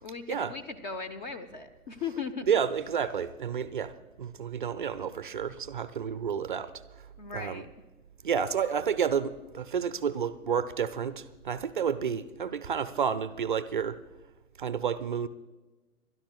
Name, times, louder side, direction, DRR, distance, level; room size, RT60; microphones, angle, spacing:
voice 1, 0.0-2.5 7.2-7.7, left 5 dB, 30° left, 0.8 m, -37 dB
voice 2, 2.4-6.7 7.3-7.7 8.2-14.0 14.6-15.3, right 7 dB, 35° right, 0.5 m, -30 dB
29.0 x 12.5 x 2.3 m
figure-of-eight pair, 120°, 45 cm